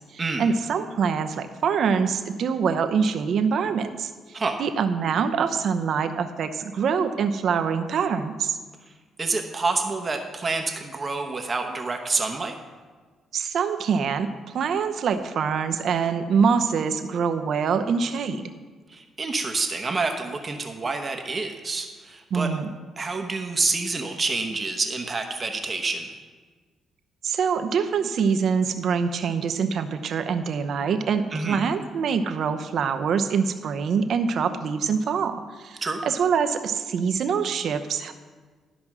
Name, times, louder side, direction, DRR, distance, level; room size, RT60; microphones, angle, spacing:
voice 1, 0.0-4.1 4.6-8.6 13.3-14.3 14.5-18.5 22.3-22.7 27.2-38.1, right 6 dB, 65° right, 8 dB, 0.8 m, -24 dB
voice 2, 9.2-12.6 18.9-22.5 23.0-26.1 31.3-31.6 35.8-36.0, right 3 dB, 30° right, 4 dB, 1.0 m, -28 dB
12.5 x 5.2 x 6.1 m, 1.4 s
cardioid pair, 90°, 0 cm